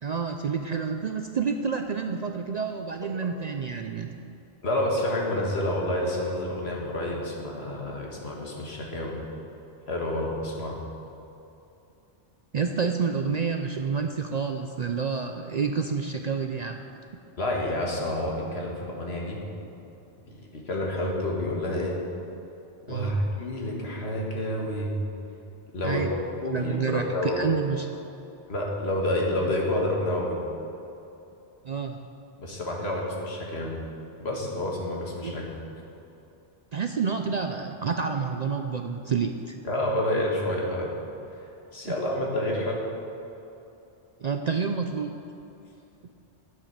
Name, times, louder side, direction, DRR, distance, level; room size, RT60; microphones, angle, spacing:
voice 1, 0.0-4.1 12.5-16.8 22.9-23.2 25.8-26.1 26.5-27.9 31.6-32.0 35.2-35.3 36.7-39.6 41.9-42.0 44.2-45.1, right 5 dB, 55° right, 5 dB, 0.5 m, -29 dB
voice 2, 4.6-9.2 9.9-10.8 17.4-19.4 20.3-22.0 22.9-25.0 25.7-26.1 26.4-27.5 28.5-30.4 32.4-33.8 34.2-35.5 39.6-40.9 41.7-42.8, left 1 dB, 70° left, -2 dB, 2.0 m, -29 dB
10.5 x 7.5 x 6.4 m, 2.9 s
omnidirectional pair, 1.1 m